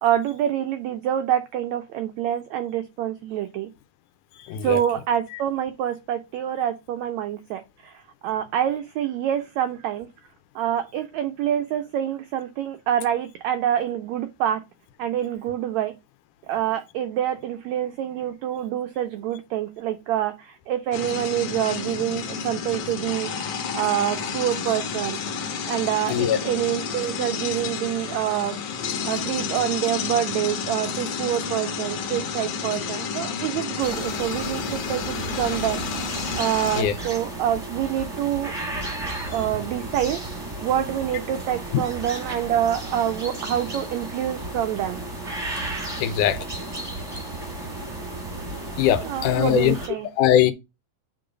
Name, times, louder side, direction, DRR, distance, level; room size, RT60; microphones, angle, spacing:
voice 1, 0.0-3.7 4.6-10.1 10.5-14.6 15.0-16.0 16.5-23.3 23.7-25.2 25.7-28.6 29.0-35.8 36.3-38.5 39.3-40.2 40.6-45.0 49.0-50.1, right 11 dB, 90° right, 1.5 m, -26 dB
sound 1, 20.9-36.8, left 6 dB, 65° left, 1.7 m, -30 dB
sound 2, 33.8-49.9, right 2 dB, 15° right, 0.9 m, -34 dB
voice 2, 46.0-46.4 48.8-49.7 50.2-50.5, left 11 dB, 80° left, 2.1 m, -20 dB
6.9 x 3.9 x 4.9 m
omnidirectional pair, 3.8 m